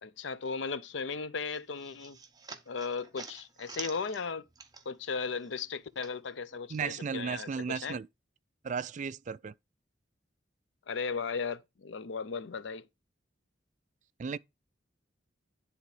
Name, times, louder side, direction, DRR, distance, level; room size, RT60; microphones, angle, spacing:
voice 1, 0.0-2.2 2.7-4.5 4.9-8.0 10.9-12.9, left 5 dB, 80° left, 0.6 m, -36 dB
sound 1, 1.5-5.1 5.4-6.8, right 5 dB, 20° right, 0.9 m, -48 dB
voice 2, 6.7-8.1 8.6-9.5 14.2-14.4, right 6 dB, 40° right, 0.3 m, -35 dB
10.5 x 3.7 x 4.8 m
head